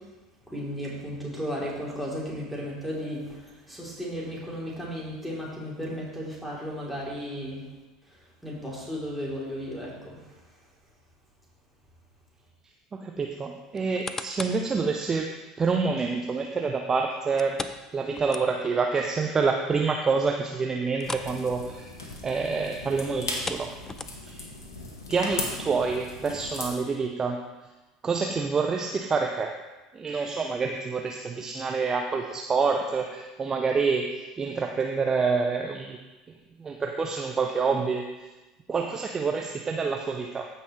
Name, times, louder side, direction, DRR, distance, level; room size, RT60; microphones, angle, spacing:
voice 1, 0.5-7.6 8.4-10.2, equal, ahead, -5 dB, 3.3 m, -34 dB
voice 2, 12.9-15.3 15.6-17.6 17.9-21.9 22.2-23.7 24.2-24.5 25.1-27.4 28.0-29.5 29.9-36.0 36.3-38.3 38.7-40.5, right 4 dB, 25° right, 3 dB, 0.7 m, -27 dB
sound 1, 13.8-14.7 15.2-15.3 17.4-18.8 19.2-19.3 19.7-19.8 20.9-21.4 21.7-21.9 23.2-24.4 25.1-25.2, left 3 dB, 20° left, 0.5 m, -38 dB
sound 2, 21.0-26.7, left 2 dB, 75° left, 1.3 m, -37 dB
14.5 x 5.5 x 3.2 m, 1.2 s
figure-of-eight pair, 70°, 2 cm